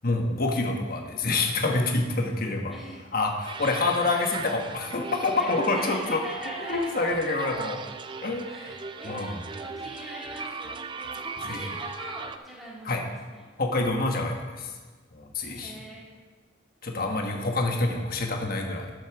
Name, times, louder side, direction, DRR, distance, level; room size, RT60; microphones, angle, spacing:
voice 1, 0.0-2.7 3.1-6.2 6.7-7.8 8.2-8.5 9.0-9.4 11.4-11.6 12.8-13.0 13.6-14.7 15.1-15.8 16.8-18.9, left 3 dB, 45° left, 2 dB, 1.4 m, -27 dB
voice 2, 2.7-3.1 5.4-6.9 8.5-13.5 15.4-16.1, equal, ahead, -6 dB, 2.5 m, -42 dB
sound 1, 3.5-12.4, right 5 dB, 25° right, 0.3 m, -38 dB
8.4 x 8.1 x 6.1 m, 1.4 s
head